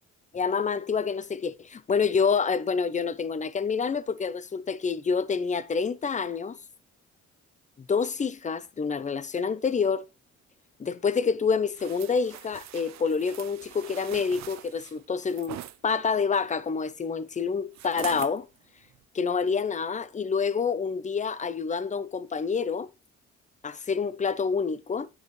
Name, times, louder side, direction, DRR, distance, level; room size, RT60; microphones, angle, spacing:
voice 1, 0.3-6.6 7.9-10.0 10.8-15.6 15.8-18.4 19.1-22.9 23.6-25.1, left 5 dB, 25° left, 0.6 m, -27 dB
sound 1, 11.8-15.8 17.7-18.4 18.9-19.0, right 13 dB, 65° right, 0.6 m, -43 dB
9.4 x 4.7 x 3.1 m
cardioid pair, 90°, 30 cm